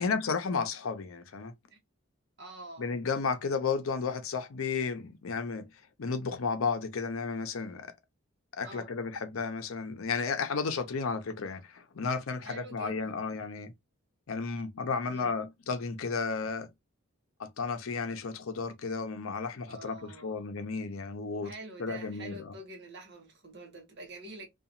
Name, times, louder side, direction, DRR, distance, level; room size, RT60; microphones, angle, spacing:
voice 1, 0.0-1.5 2.8-5.7 6.0-7.9 8.6-13.7 14.3-16.7 17.4-21.5 21.8-22.5, left 5 dB, 85° left, 0.6 m, -33 dB
voice 2, 2.4-2.9 8.6-8.9 12.4-13.1 15.1-15.3 19.7-20.5 21.4-24.5, right 2 dB, 55° right, 1.0 m, -46 dB
2.8 x 2.4 x 2.5 m
head